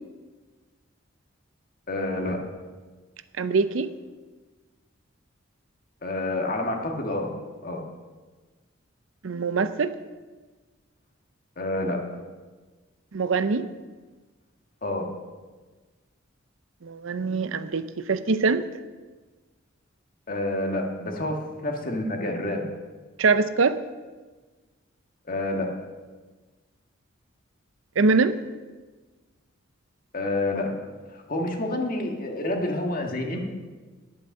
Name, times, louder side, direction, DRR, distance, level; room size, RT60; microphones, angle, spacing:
voice 1, 1.9-2.4 6.0-7.3 7.6-7.8 11.6-12.2 14.8-15.1 20.3-22.7 25.2-25.7 30.1-30.7 31.1-33.4, left 1 dB, 45° left, 2 dB, 1.7 m, -28 dB
voice 2, 3.4-3.9 9.2-9.9 13.1-13.7 16.8-18.6 23.2-23.8 28.0-28.4, right 4 dB, 75° right, 12 dB, 0.6 m, -23 dB
10.5 x 8.6 x 6.5 m, 1.3 s
head